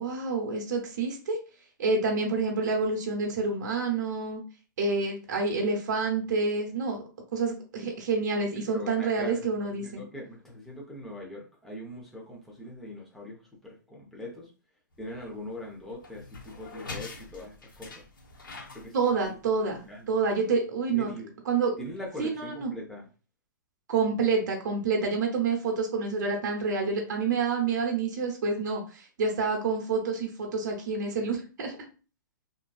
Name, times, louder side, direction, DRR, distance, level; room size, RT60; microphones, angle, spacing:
voice 1, 0.0-1.4 1.8-4.4 4.8-7.0 7.3-10.0 18.9-21.1 21.5-21.7 22.2-22.7 23.9-31.7, right 4 dB, 60° right, 2 dB, 0.8 m, -28 dB
voice 2, 8.7-14.5 15.0-18.0 18.7-19.2 19.6-20.1 20.9-21.4 21.8-23.1, left 1 dB, ahead, -3 dB, 0.6 m, -42 dB
sound 1, 14.9-20.3, left 3 dB, 90° left, 0.7 m, -45 dB
2.5 x 2.2 x 2.3 m, 0.36 s
hypercardioid pair, 135°, 11 cm